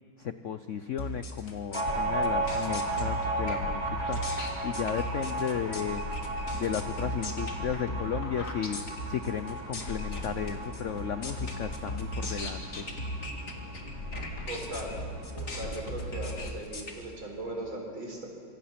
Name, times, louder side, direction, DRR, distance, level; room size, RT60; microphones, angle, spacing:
voice 1, 0.2-4.4 4.6-6.1 6.5-12.8, left 8 dB, 80° left, 10 dB, 0.6 m, -34 dB
sound 1, 1.0-16.9, left 1 dB, 40° left, 2.5 m, -37 dB
sound 2, 1.7-14.8 15.1-15.2 15.5-16.3, right 2 dB, 30° right, 3.5 m, -35 dB
sound 3, 1.8-16.4, right 1 dB, 50° right, 6.0 m, -44 dB
voice 2, 14.5-14.9 15.4-18.3, right 1 dB, 75° right, 0 dB, 5.6 m, -38 dB
26.5 x 23.5 x 5.9 m, 2.6 s
omnidirectional pair, 2.2 m